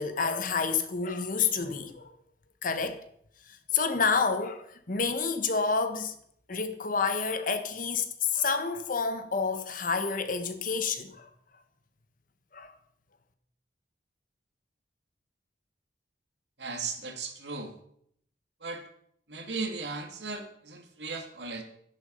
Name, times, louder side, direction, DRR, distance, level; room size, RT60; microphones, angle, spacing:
voice 1, 0.0-2.1 2.6-3.0 3.7-6.1 6.5-8.1 8.3-11.3 12.5-12.7, left 5 dB, 50° left, 1.3 m, -29 dB
voice 2, 16.6-17.7 18.6-18.8 19.3-21.6, right 4 dB, 80° right, 2.4 m, -36 dB
12.0 x 10.5 x 5.5 m
head